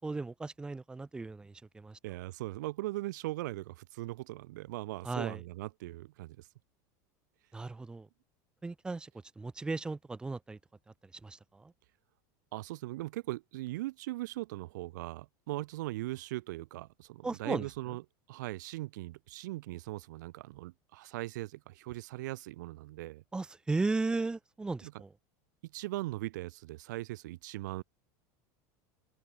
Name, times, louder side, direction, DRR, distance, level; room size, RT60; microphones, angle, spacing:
voice 1, 0.0-2.0 5.0-5.4 7.5-8.1 8.6-9.1 9.4-10.6 11.2-11.7 17.2-17.7 23.3-25.1, right 3 dB, 10° right, 5.6 m, -36 dB
voice 2, 2.0-6.5 12.5-18.0 18.3-23.2 24.8-24.9 25.6-27.8, right 18 dB, 80° right, 3.9 m, -39 dB
supercardioid pair, 160°, 10 cm